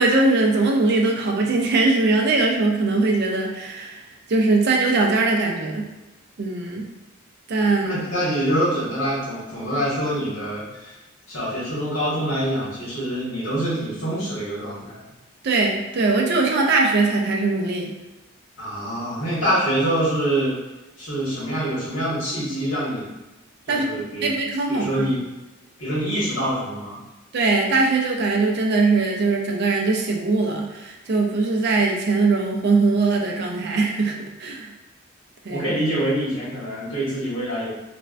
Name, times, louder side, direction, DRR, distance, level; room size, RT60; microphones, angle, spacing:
voice 1, 0.0-4.0 4.3-5.9 6.4-6.9 7.5-8.0 15.4-17.9 23.7-23.9 24.2-25.1 27.3-34.7 35.4-35.7, right 3 dB, 50° right, 0 dB, 0.4 m, -21 dB
voice 2, 7.8-10.9 11.3-15.0 18.6-20.6 21.0-23.1 23.6-24.3 24.7-25.2 25.8-27.0 35.5-37.7, right 1 dB, 80° left, -8 dB, 1.4 m, -25 dB
3.2 x 2.2 x 2.4 m, 1.0 s
head